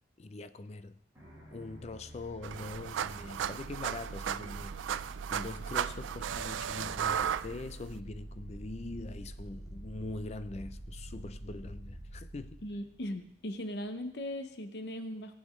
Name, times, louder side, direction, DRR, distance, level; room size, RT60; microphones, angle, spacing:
voice 1, 0.2-1.0 1.5-5.0 5.3-12.6, left 2 dB, 35° left, 0.4 m, -43 dB
sound 1, 1.1-13.9, right 1 dB, 15° right, 4.3 m, -48 dB
sound 2, 2.4-8.0, right 9 dB, 80° right, 0.3 m, -35 dB
sound 3, 6.3-12.2, left 1 dB, 10° left, 2.5 m, -51 dB
voice 2, 12.6-15.3, left 1 dB, 60° left, 0.8 m, -38 dB
16.5 x 8.7 x 3.1 m
head